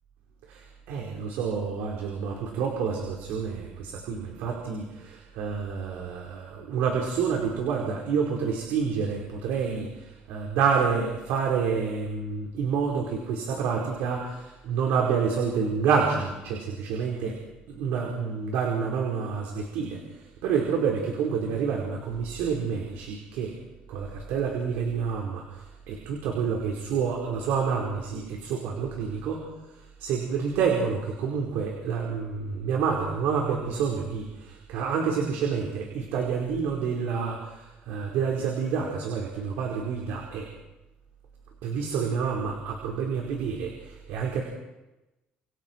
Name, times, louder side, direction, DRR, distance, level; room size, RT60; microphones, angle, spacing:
voice 1, 0.5-17.4 17.7-23.6 23.9-40.5 41.6-44.4, right 6 dB, 80° right, 0 dB, 4.8 m, -28 dB
30.0 x 28.0 x 4.7 m, 1.0 s
cardioid pair, 170°, 3 cm